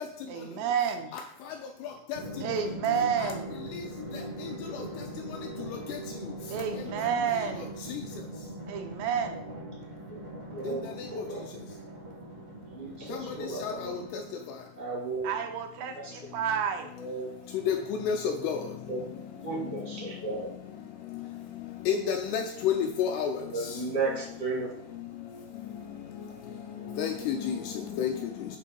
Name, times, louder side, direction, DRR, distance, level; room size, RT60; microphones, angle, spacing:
voice 1, 0.3-1.2 2.4-3.6 6.5-7.8 8.7-9.4 15.2-16.9, right 7 dB, 80° right, 5 dB, 2.8 m, -30 dB
Drum, 2.1-14.5, right 1 dB, 45° right, 0.8 m, -41 dB
voice 2, 10.5-11.4 12.7-13.9 14.7-15.3 16.0-16.1 17.0-17.3 18.9-19.0 19.4-20.5 23.4-24.7, right 3 dB, 30° left, -6 dB, 0.7 m, -34 dB
voice 3, 21.9-23.3 27.0-27.5 28.0-28.1, left 8 dB, 80° left, 3 dB, 2.4 m, -27 dB
9.0 x 3.2 x 5.3 m, 0.72 s
omnidirectional pair, 5.2 m